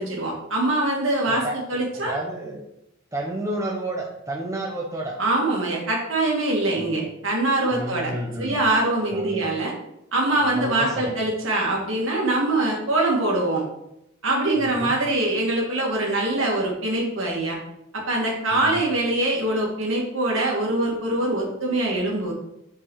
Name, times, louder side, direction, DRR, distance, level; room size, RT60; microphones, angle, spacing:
voice 1, 0.0-2.2 5.2-8.1 8.4-9.7 10.1-13.6 14.2-17.6 17.9-22.3, right 2 dB, 65° right, -2 dB, 2.3 m, -23 dB
voice 2, 1.2-2.6 3.1-5.2 6.8-7.0 7.7-8.6 9.1-9.4 10.4-11.1 14.6-15.0 18.5-18.8, right 1 dB, 15° right, -1 dB, 0.8 m, -31 dB
5.8 x 4.7 x 5.6 m, 0.83 s
head